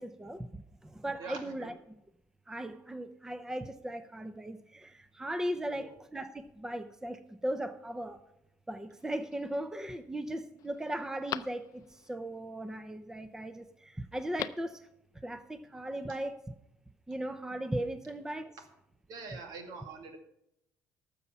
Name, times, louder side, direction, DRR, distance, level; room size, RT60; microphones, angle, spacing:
voice 1, 0.0-1.7 2.5-8.2 8.7-14.8 15.2-16.4 17.1-18.6, right 1 dB, 10° right, 11 dB, 0.6 m, -38 dB
voice 2, 1.2-1.7 5.7-5.9 19.1-20.2, right 4 dB, 75° right, 5 dB, 2.1 m, -44 dB
Telephone, 9.0-9.6 10.1-10.2 10.6-12.1 14.1-14.8 15.0-15.1, left 11 dB, 60° left, 0.5 m, -42 dB
13.0 x 7.0 x 5.9 m, 0.80 s
cardioid pair, 125°, 7 cm